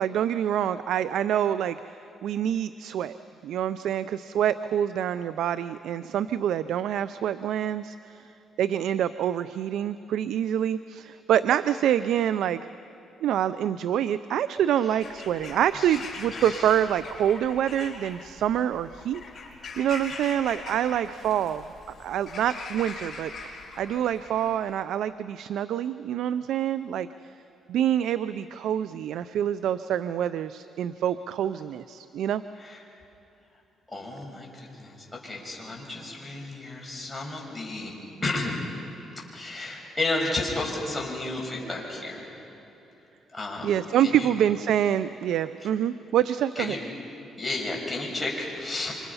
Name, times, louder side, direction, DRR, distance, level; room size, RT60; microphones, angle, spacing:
voice 1, 0.0-2.0 2.2-3.2 3.4-8.2 8.6-12.6 13.2-19.2 19.8-21.6 22.0-27.1 27.7-32.4 43.6-46.8, right 10 dB, 80° right, 14 dB, 0.5 m, -26 dB
Bird vocalization bird call bird song / Crow, 14.9-24.7, left 3 dB, 40° left, 6.3 m, -42 dB
voice 2, 16.3-16.8 32.6-32.8 33.9-37.9 38.2-38.5 39.2-42.3 43.3-43.7 44.0-44.3 45.6-45.7 46.6-46.8 47.4-49.0, left 2 dB, 15° left, -2 dB, 6.2 m, -32 dB
27.5 x 25.5 x 5.6 m, 3.0 s
cardioid pair, 90°, 0 cm